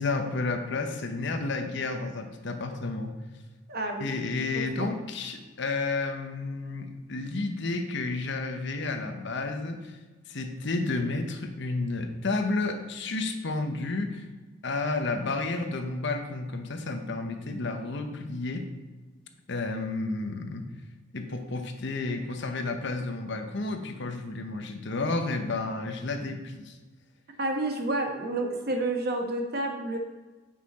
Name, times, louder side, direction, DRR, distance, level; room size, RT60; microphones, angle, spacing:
voice 1, 0.0-3.1 4.0-10.0 10.3-14.2 14.6-18.7 19.5-20.6 21.1-26.8, left 3 dB, 60° left, 5 dB, 0.9 m, -31 dB
voice 2, 3.7-4.1 4.5-4.9 27.4-30.0, right 2 dB, 50° right, 3 dB, 1.1 m, -30 dB
8.9 x 5.6 x 4.2 m, 1.3 s
head